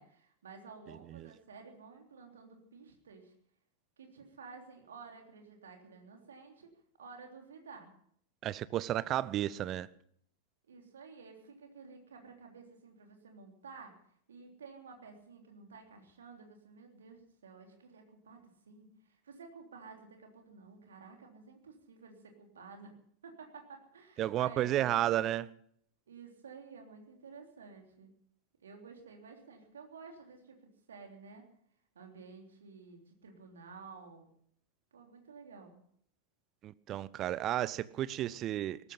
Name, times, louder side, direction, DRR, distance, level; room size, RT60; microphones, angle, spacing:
voice 1, 0.0-3.3 4.0-6.7 7.0-7.9 10.7-13.9 14.3-22.9 23.2-24.9 26.1-28.1 28.6-31.5 31.9-34.3 34.9-35.8, right 4 dB, 65° right, 3.4 m, -52 dB
voice 2, 8.4-9.9 24.2-25.5 36.6-38.8, right 13 dB, 35° right, 0.7 m, -32 dB
18.0 x 14.5 x 5.6 m
figure-of-eight pair, 90°, 0 cm